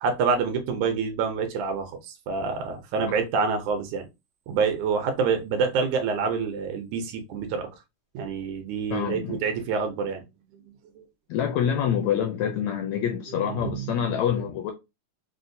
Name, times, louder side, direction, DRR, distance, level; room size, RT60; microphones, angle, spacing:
voice 1, 0.0-4.1 4.5-7.7 8.1-10.2 11.0-11.1 13.4-14.1, right 5 dB, 75° right, 2.0 m, -27 dB
voice 2, 8.9-9.5 11.3-14.7, left 8 dB, 80° left, 1.6 m, -26 dB
6.2 x 2.1 x 2.6 m
omnidirectional pair, 3.6 m